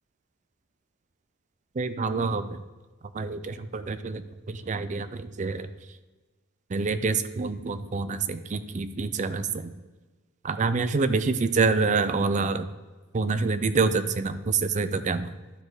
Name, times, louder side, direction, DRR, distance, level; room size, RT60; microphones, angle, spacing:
voice 1, 1.8-2.6 3.1-4.2 4.5-5.7 6.7-9.8 10.4-12.7 13.1-15.3, right 4 dB, 35° right, 12 dB, 0.4 m, -27 dB
11.5 x 4.9 x 4.0 m, 1.3 s
head